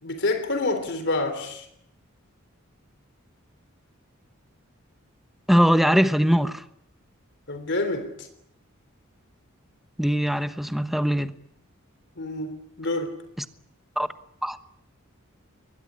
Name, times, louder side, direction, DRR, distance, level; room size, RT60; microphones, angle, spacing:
voice 1, 0.0-1.7 7.5-8.3 12.2-13.2, left 2 dB, 55° left, 3.5 m, -28 dB
voice 2, 5.5-6.6 10.0-11.3 14.0-14.1 14.4-14.6, equal, ahead, 1.1 m, -21 dB
23.0 x 20.5 x 9.9 m
head